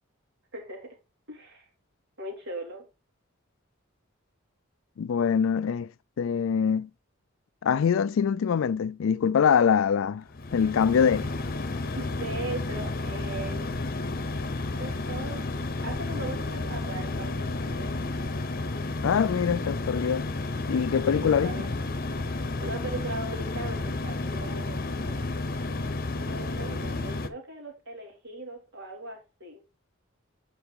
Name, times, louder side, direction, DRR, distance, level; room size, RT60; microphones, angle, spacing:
voice 1, 0.5-1.0 1.3-1.7 2.2-2.8 11.0-11.3 11.9-13.9 14.8-15.5 15.8-18.1 21.0-21.9 22.3-25.3 26.2-29.6, right 2 dB, 60° right, 3.1 m, -39 dB
voice 2, 5.0-5.9 6.2-6.9 7.6-10.2 10.5-11.3 19.0-20.3 20.7-21.5, left 7 dB, 70° left, 0.4 m, -24 dB
sound 1, 10.3-27.3, left 2 dB, 45° left, 0.8 m, -31 dB
8.8 x 4.8 x 3.7 m
head